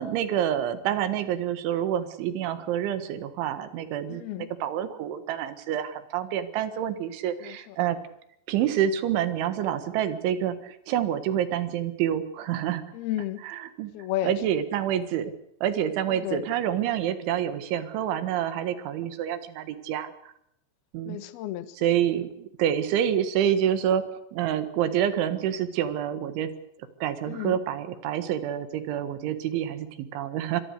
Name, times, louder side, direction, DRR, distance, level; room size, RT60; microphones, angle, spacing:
voice 1, 0.0-8.0 8.5-12.8 13.4-13.9 14.2-15.3 15.6-20.1 20.9-21.2 21.8-24.1 24.3-26.5 27.0-30.6, right 10 dB, 75° right, 11 dB, 3.9 m, -27 dB
voice 2, 4.1-4.5 7.4-7.8 12.9-13.4 13.9-14.4 16.1-16.4 21.1-21.7 27.3-27.6, left 13 dB, 65° left, 12 dB, 2.8 m, -32 dB
25.5 x 21.0 x 6.6 m, 0.76 s
omnidirectional pair, 5.6 m